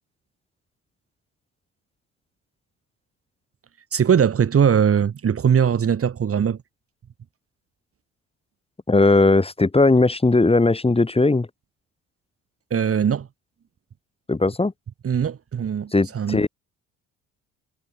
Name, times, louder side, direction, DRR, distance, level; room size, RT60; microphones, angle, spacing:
voice 1, 3.9-6.6 12.7-13.3 15.0-16.5, right 8 dB, 45° right, 2.6 m, -20 dB
voice 2, 8.9-11.5 14.3-14.7 15.9-16.5, left 3 dB, 20° left, 7.0 m, -18 dB
cardioid pair, 85°, 31 cm